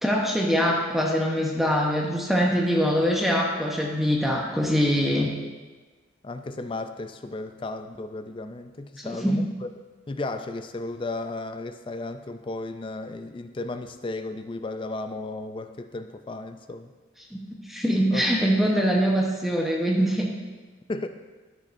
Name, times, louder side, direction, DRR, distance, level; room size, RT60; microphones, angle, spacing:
voice 1, 0.0-5.3 9.0-9.4 17.3-17.4 17.7-20.3, equal, ahead, -1 dB, 0.9 m, -23 dB
voice 2, 6.2-9.5 10.1-16.9 18.1-18.7 20.9-21.1, left 2 dB, 25° left, 9 dB, 0.4 m, -34 dB
13.5 x 6.6 x 2.6 m, 1.3 s
head